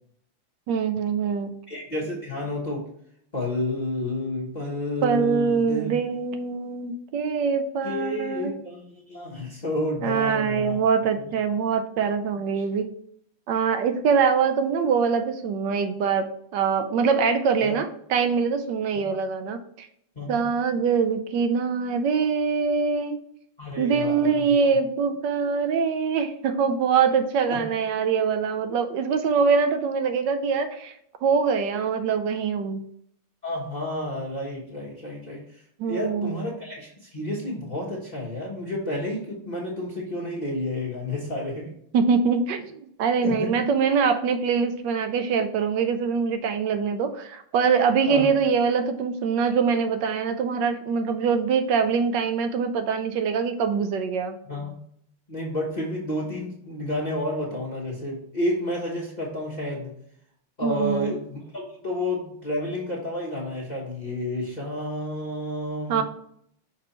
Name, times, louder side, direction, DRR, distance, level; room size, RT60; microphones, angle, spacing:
voice 1, 0.7-1.5 5.0-8.5 10.0-12.9 13.5-19.9 20.3-23.2 23.8-30.9 31.2-32.8 35.8-36.3 41.9-54.4 60.6-61.1 65.9-66.0, right 6 dB, 70° right, 9 dB, 1.1 m, -24 dB
voice 2, 1.7-2.9 3.3-5.9 7.8-10.8 17.6-17.7 20.1-20.4 23.6-24.4 27.5-27.6 33.4-35.4 35.8-41.7 43.2-43.7 48.1-48.3 54.4-54.8 55.3-59.9 60.6-66.0, left 1 dB, 25° left, -4 dB, 1.0 m, -30 dB
6.1 x 4.3 x 4.3 m, 0.67 s
omnidirectional pair, 2.3 m